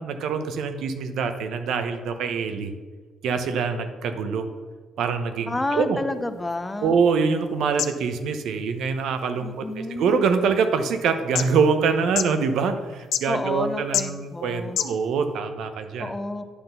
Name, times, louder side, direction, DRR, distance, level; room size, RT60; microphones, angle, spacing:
voice 1, 0.0-2.7 3.2-4.5 5.0-6.0 6.8-16.1, right 5 dB, 80° right, 8 dB, 0.8 m, -24 dB
voice 2, 5.5-7.0 9.4-10.2 13.3-14.8 16.0-16.4, left 2 dB, 15° left, 10 dB, 0.6 m, -30 dB
sound 1, 6.1-15.3, left 10 dB, 80° left, 0.5 m, -35 dB
9.7 x 3.9 x 6.7 m, 1.5 s
cardioid pair, 90°, 0 cm